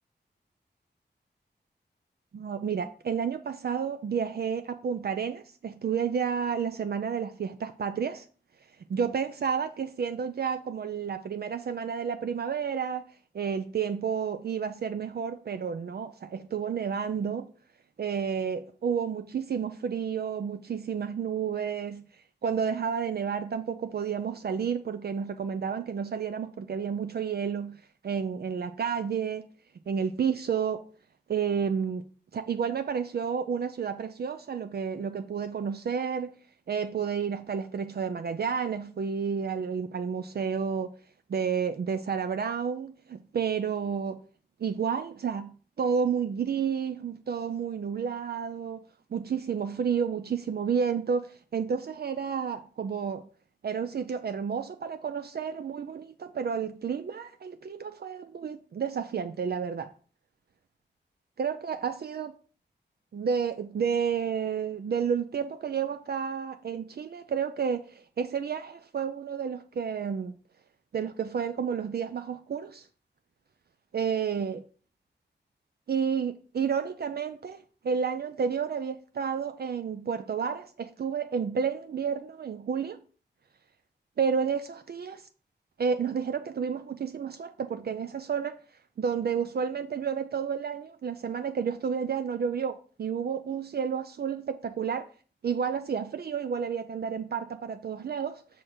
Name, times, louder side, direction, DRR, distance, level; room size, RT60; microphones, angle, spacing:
voice 1, 2.3-8.3 8.9-13.0 13.3-17.5 18.0-22.1 22.4-29.4 29.9-30.8 31.3-32.0 32.3-36.4 36.7-40.9 41.3-44.2 44.6-48.8 49.1-53.2 53.6-59.9 61.4-62.3 63.1-70.4 70.9-72.9 73.9-74.6 75.9-83.0 84.2-85.2 85.8-88.6 89.0-95.1 95.4-98.4, right 6 dB, 60° right, 0.5 m, -31 dB
6.3 x 5.0 x 4.3 m
wide cardioid pair, 105°, 18 cm